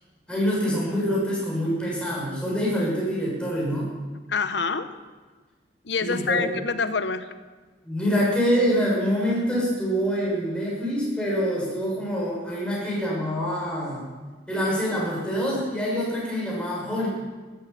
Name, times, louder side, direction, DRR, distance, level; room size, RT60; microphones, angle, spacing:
voice 1, 0.3-3.9 6.0-6.5 7.8-14.0 14.5-17.1, equal, 5° left, -5 dB, 6.4 m, -25 dB
voice 2, 4.3-4.9 5.9-7.3, left 5 dB, 70° left, 11 dB, 0.9 m, -26 dB
14.0 x 13.0 x 7.0 m, 1.4 s
head